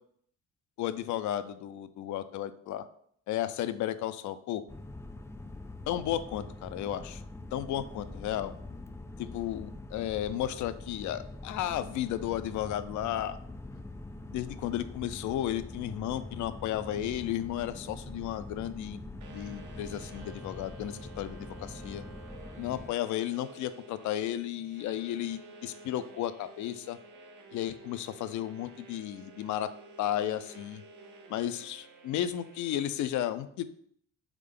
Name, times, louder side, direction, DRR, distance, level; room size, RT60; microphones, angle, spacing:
voice 1, 0.8-2.8 3.3-4.6 5.9-7.2 7.5-8.5 9.2-13.4 14.3-19.0 19.3-22.0 22.6-27.0 27.5-29.7 30.0-30.8 31.3-33.6, left 12 dB, 75° left, 13 dB, 0.4 m, -33 dB
sound 1, 4.7-22.9, left 2 dB, 10° left, 0.3 m, -44 dB
sound 2, 19.2-32.9, right 3 dB, 80° right, 0.8 m, -52 dB
3.7 x 3.6 x 3.6 m, 0.65 s
cardioid pair, 90°, 30 cm